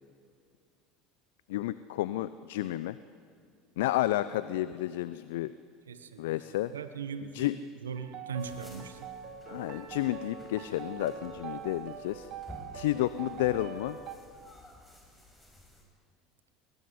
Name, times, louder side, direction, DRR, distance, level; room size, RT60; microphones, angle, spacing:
voice 1, 1.5-3.0 3.8-5.5 6.2-6.7 7.2-7.6 9.5-12.3 12.7-14.0, left 15 dB, 75° left, 15 dB, 0.6 m, -31 dB
voice 2, 5.9-6.2 6.7-7.5 7.8-9.0, right 6 dB, 85° right, 10 dB, 1.3 m, -39 dB
sound 1, 7.9-14.1, right 7 dB, 50° right, 2.6 m, -43 dB
sound 2, 8.4-15.8, left 1 dB, 10° left, 6.5 m, -54 dB
21.0 x 20.0 x 9.5 m, 2.2 s
hypercardioid pair, 80°, 0 cm